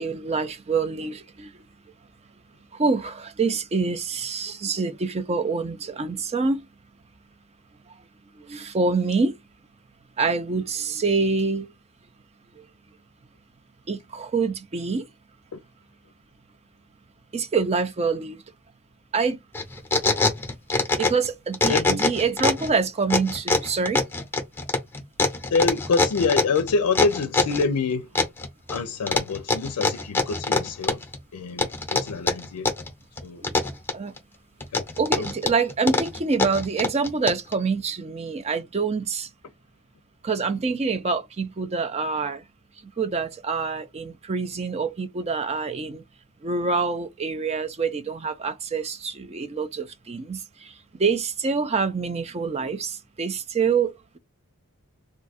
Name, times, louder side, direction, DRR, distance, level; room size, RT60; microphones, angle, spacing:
voice 1, 0.0-1.5 2.7-6.7 8.4-9.4 10.2-11.7 13.9-15.1 17.3-18.4 19.1-19.4 21.0-24.0 33.4-33.6 33.9-34.1 35.0-39.3 40.2-42.4 43.0-46.0 46.4-50.7 51.0-54.2, right 4 dB, 30° right, 0.4 m, -26 dB
sound 1, 19.5-21.3 21.5-22.7 23.1-27.6 28.2-28.8 29.1-31.2 31.6-32.9 33.2-34.2 34.6-37.5, left 3 dB, 10° left, 0.7 m, -23 dB
voice 2, 21.7-22.0 25.5-28.1 28.7-32.7 33.2-33.5 34.7-34.8 35.2-35.3, left 4 dB, 90° left, 0.4 m, -26 dB
2.6 x 2.3 x 4.1 m
head